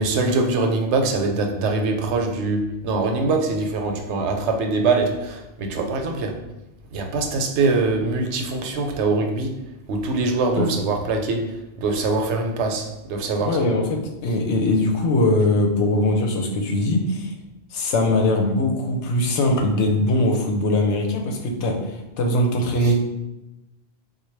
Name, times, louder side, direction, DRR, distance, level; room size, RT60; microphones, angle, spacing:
voice 1, 0.0-6.4 6.9-9.5 9.9-11.5 11.8-13.6 22.8-22.9, right 3 dB, 85° right, 4 dB, 0.9 m, -23 dB
voice 2, 13.4-17.3 17.7-23.0, left 1 dB, 90° left, 3 dB, 0.9 m, -21 dB
3.9 x 2.2 x 3.2 m, 0.97 s
omnidirectional pair, 1.1 m